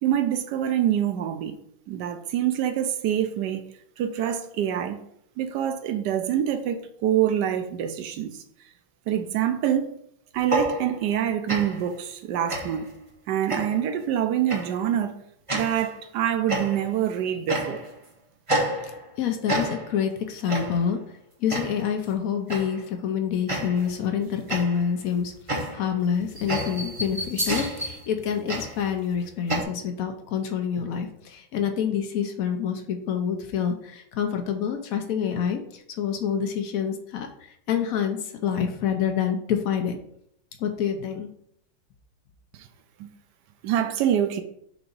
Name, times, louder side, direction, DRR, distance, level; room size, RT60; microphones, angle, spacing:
voice 1, 0.0-1.6 1.9-3.6 4.0-5.0 5.4-8.3 9.1-9.9 10.3-12.9 13.3-15.2 15.5-17.8 42.6-42.7 43.0-43.1 43.6-44.4, right 10 dB, 70° right, 1.1 m, -25 dB
sound 1, 10.4-11.2 11.5-11.9 12.5-12.9 13.5-13.9 14.5-14.8 15.5-15.9 16.5-17.0 17.5-18.0 18.5-19.2 19.5-20.0 20.5-20.9 21.5-21.9 22.5-22.8 23.5-24.0 24.5-29.6, right 1 dB, 30° right, 0.6 m, -30 dB
voice 2, 18.8-21.0 21.4-40.0 40.6-41.3, left 8 dB, 70° left, 0.8 m, -27 dB
4.8 x 3.9 x 5.2 m
omnidirectional pair, 2.2 m